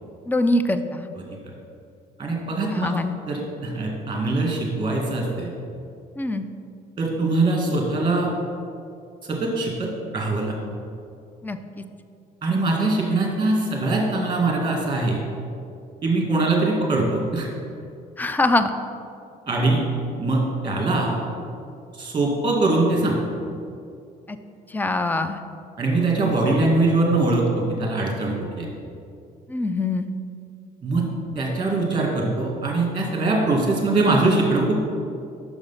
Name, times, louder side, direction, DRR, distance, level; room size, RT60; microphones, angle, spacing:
voice 1, 0.3-1.0 2.7-3.2 6.2-6.5 11.4-11.8 18.2-18.7 24.3-24.4 24.7-25.4 29.5-30.1, left 2 dB, 10° left, 10 dB, 0.4 m, -23 dB
voice 2, 2.2-3.0 3.3-5.5 7.0-8.3 9.3-10.5 12.4-15.2 16.0-17.5 19.5-19.8 20.2-21.1 21.9-23.2 25.8-27.5 27.8-28.7 30.8-31.1 31.4-34.8, right 2 dB, 30° right, -1 dB, 1.9 m, -22 dB
6.4 x 4.9 x 5.6 m, 2.5 s
cardioid pair, 110°, 17 cm